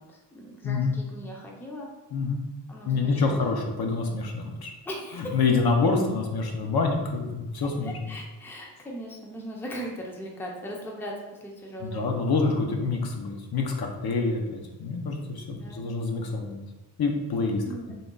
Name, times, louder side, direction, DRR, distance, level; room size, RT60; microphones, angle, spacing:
voice 1, 0.0-1.9 2.7-3.7 4.9-5.4 7.6-11.1 11.4-12.2 15.6-16.0 17.6-17.9, equal, 5° left, -1 dB, 0.5 m, -39 dB
voice 2, 0.6-1.0 2.1-2.4 2.9-4.7 5.1-8.1 11.8-16.6 17.0-17.9, left 4 dB, 60° left, 2 dB, 0.6 m, -27 dB
3.8 x 2.2 x 3.7 m, 1.1 s
wide cardioid pair, 125°, 43 cm